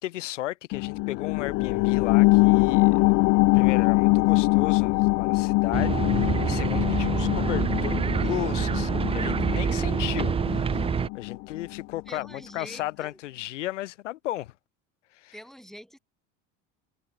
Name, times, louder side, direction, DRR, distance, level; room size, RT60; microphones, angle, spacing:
voice 1, 0.0-3.0 3.5-10.8 11.1-14.5 15.1-15.4, left 15 dB, 80° left, 2.7 m, -35 dB
sound 1, 0.7-11.8 12.2-12.3, left 25 dB, 55° left, 0.5 m, -23 dB
sound 2, 5.7-11.1, right 6 dB, 15° right, 0.4 m, -26 dB
voice 2, 12.1-13.2 15.3-16.0, equal, ahead, 5.8 m, -45 dB
hypercardioid pair, 70°, 36 cm